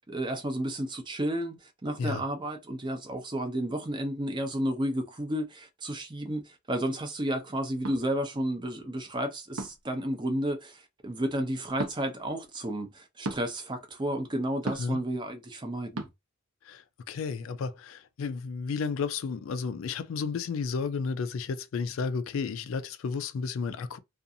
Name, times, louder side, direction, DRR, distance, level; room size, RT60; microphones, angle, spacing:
voice 1, 0.1-16.1, right 1 dB, 20° right, 0.5 m, -32 dB
sound 1, 7.8-8.0 9.6-9.9 11.8-12.0 13.2-13.4 14.7-15.0 16.0-16.1, right 2 dB, 80° right, 0.7 m, -34 dB
voice 2, 16.6-24.0, left 5 dB, 65° left, 0.3 m, -32 dB
2.5 x 2.4 x 2.7 m
head